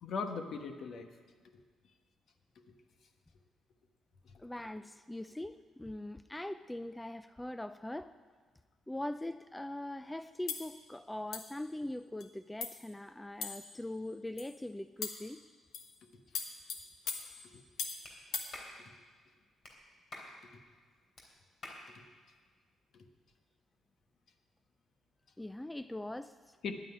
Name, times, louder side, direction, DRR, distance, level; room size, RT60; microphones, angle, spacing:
voice 1, 0.0-1.1 4.3-4.4 17.5-17.6 18.8-18.9 20.5-20.6 21.9-22.0 22.9-23.1 26.6-26.7, left 5 dB, 65° left, 6 dB, 1.3 m, -40 dB
voice 2, 4.4-8.1 8.9-15.4 25.4-26.6, left 1 dB, 10° left, 12 dB, 0.4 m, -42 dB
sound 1, 10.5-10.7 11.3-11.6 12.2-12.3 12.6-12.8 13.4-13.8 14.4-14.5 15.0-15.3 15.7-16.0 16.4-18.1 18.3-18.5, left 6 dB, 80° left, 1.4 m, -40 dB
Clapping, 18.0-18.2 18.5-18.7 19.6-19.8 20.1-20.3 21.2-21.3 21.6-21.8, left 2 dB, 50° left, 3.3 m, -47 dB
10.0 x 9.1 x 9.6 m, 1.5 s
cardioid pair, 90°, 0 cm